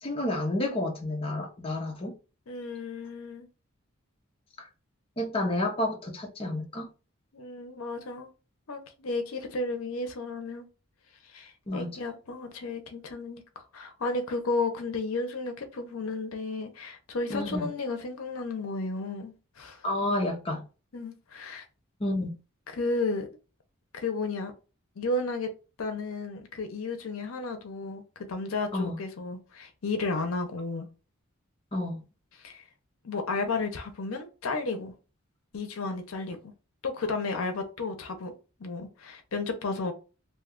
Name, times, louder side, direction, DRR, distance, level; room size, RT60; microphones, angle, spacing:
voice 1, 0.0-2.2 4.6-4.7 5.2-6.9 11.7-11.9 17.3-17.7 19.8-20.6 22.0-22.3 28.7-29.0 31.7-32.0, left 1 dB, 25° left, 0.6 m, -30 dB
voice 2, 2.5-3.5 7.3-8.3 8.7-10.7 11.3-13.4 13.7-19.8 20.9-21.6 22.7-23.3 23.9-24.5 25.0-25.5 25.8-30.9 32.4-32.6 33.0-34.9 35.5-36.5 36.8-38.3 38.6-39.9, left 3 dB, 80° left, 0.6 m, -33 dB
2.7 x 2.2 x 3.6 m
head